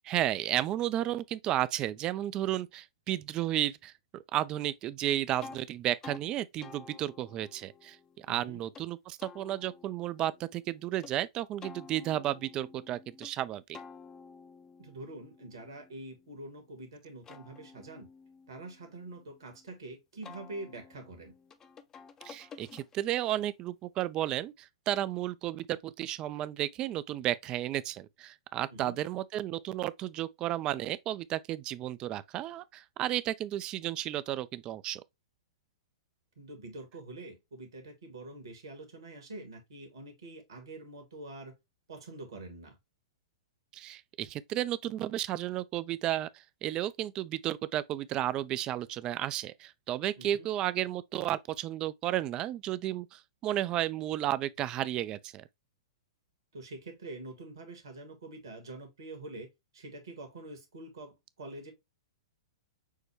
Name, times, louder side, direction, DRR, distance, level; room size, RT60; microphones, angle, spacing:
voice 1, 0.0-13.8 22.2-35.0 43.7-55.5, right 13 dB, 30° right, 0.4 m, -33 dB
sound 1, 5.4-5.6 6.0-6.2 6.6-8.9 9.2-11.1 11.6-13.3 13.7-16.6 17.0-19.7 20.2-23.2, left 5 dB, 20° left, 0.6 m, -52 dB
voice 2, 8.3-8.6 14.8-18.1 18.5-21.3 28.7-29.0 36.4-41.5 41.9-42.8 50.2-50.5 56.5-61.7, right 2 dB, 65° right, 1.5 m, -45 dB
6.3 x 2.2 x 3.2 m
figure-of-eight pair, 110°, 3 cm